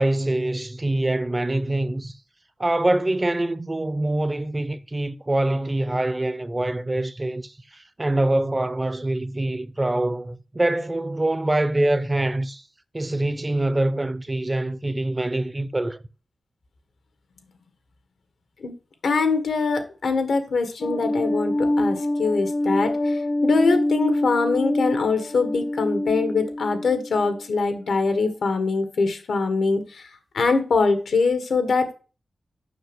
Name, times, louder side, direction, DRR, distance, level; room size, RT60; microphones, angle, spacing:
voice 1, 0.0-2.1 2.6-12.6 12.9-16.0, right 1 dB, 20° right, 0.6 m, -24 dB
voice 2, 19.0-30.1 30.3-31.9, left 4 dB, 85° left, 1.6 m, -23 dB
sound 1, 20.8-27.3, left 1 dB, 50° left, 0.9 m, -25 dB
7.1 x 6.1 x 6.2 m
wide cardioid pair, 110°, 0 cm